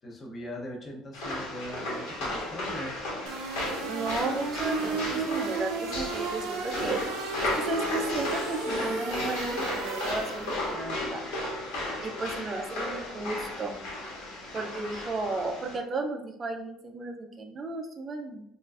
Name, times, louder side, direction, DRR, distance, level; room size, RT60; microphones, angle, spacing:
voice 1, 0.0-3.0, left 1 dB, 20° left, -1 dB, 0.6 m, -40 dB
sound 1, 1.1-15.8, left 1 dB, 80° left, 1.3 m, -34 dB
sound 2, 3.3-10.7, right 5 dB, 75° right, 0.5 m, -34 dB
voice 2, 3.9-7.0 7.4-11.2 12.0-13.7 14.5-18.4, right 3 dB, 20° right, 4 dB, 0.4 m, -34 dB
4.4 x 2.4 x 2.4 m, 0.77 s
cardioid pair, 175°, 0 cm